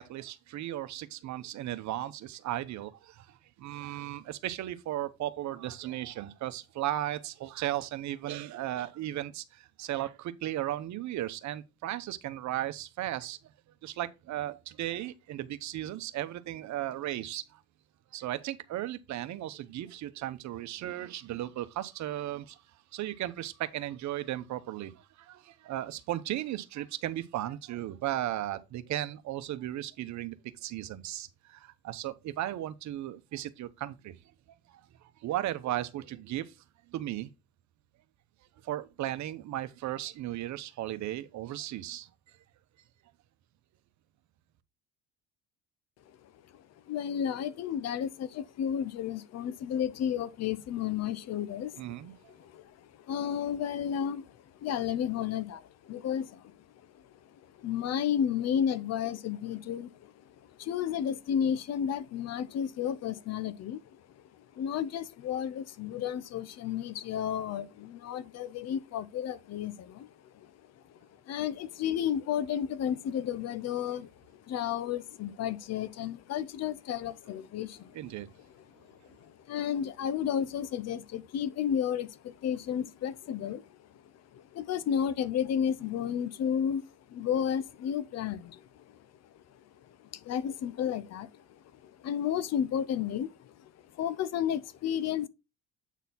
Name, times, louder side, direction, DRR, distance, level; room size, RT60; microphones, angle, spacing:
voice 1, 0.0-13.4 13.8-17.6 18.1-22.6 22.9-30.3 30.6-34.1 34.7-34.8 35.2-36.5 36.9-37.3 38.6-42.1 51.8-52.3 77.9-78.3, right 13 dB, 60° right, 0.9 m, -36 dB
voice 2, 46.2-56.7 56.9-57.0 57.3-71.0 71.3-78.1 78.4-84.0 84.3-89.0 89.5-95.3, left 9 dB, 50° left, 0.7 m, -33 dB
8.2 x 4.1 x 4.0 m
supercardioid pair, 95°, 32 cm